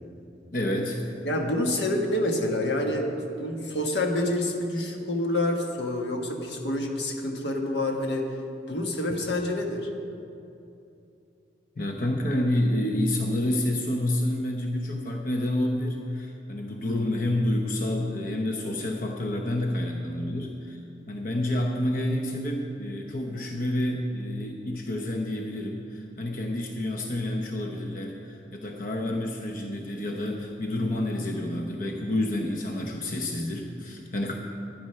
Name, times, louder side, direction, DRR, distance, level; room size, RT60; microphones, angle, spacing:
voice 1, 0.5-1.0 11.8-20.8 21.1-34.3, left 1 dB, 50° left, 1 dB, 0.9 m, -29 dB
voice 2, 1.2-8.3 8.7-9.9, left 1 dB, 80° left, 2 dB, 1.4 m, -27 dB
11.0 x 10.5 x 5.7 m, 2.7 s
head